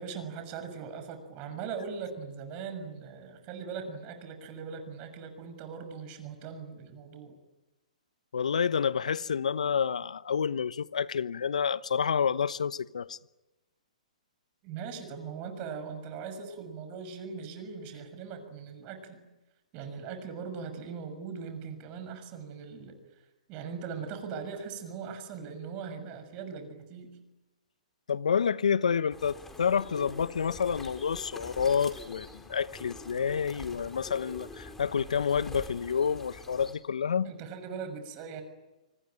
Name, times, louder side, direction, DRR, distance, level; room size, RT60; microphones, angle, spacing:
voice 1, 0.0-7.4 14.6-19.2 19.7-23.2 23.5-27.2 37.2-38.4, right 6 dB, 35° right, 6.6 m, -40 dB
voice 2, 8.3-13.2 28.1-37.3, left 7 dB, 70° left, 1.0 m, -29 dB
sound 1, 29.1-36.7, left 2 dB, 5° left, 4.2 m, -46 dB
25.5 x 25.5 x 9.1 m
hypercardioid pair, 125°, 4 cm